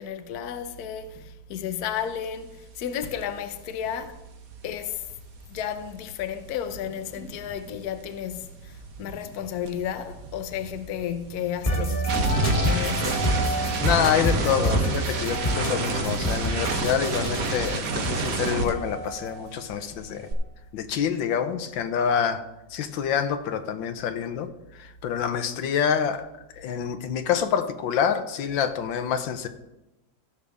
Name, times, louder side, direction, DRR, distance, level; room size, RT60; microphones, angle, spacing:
voice 1, 0.0-4.2 4.6-5.0 5.5-13.3 16.3-16.4, left 9 dB, 65° left, 1.1 m, -33 dB
sound 1, 3.0-3.2 3.5-7.9 8.1-19.4 19.7-20.3, right 4 dB, 55° right, 1.3 m, -30 dB
sound 2, 11.6-19.5, equal, 20° left, 1.3 m, -28 dB
voice 2, 13.8-20.3 20.7-22.4 22.7-24.5 25.0-26.3 26.6-29.5, left 8 dB, 85° left, 1.5 m, -26 dB
16.0 x 6.8 x 3.5 m
omnidirectional pair, 2.0 m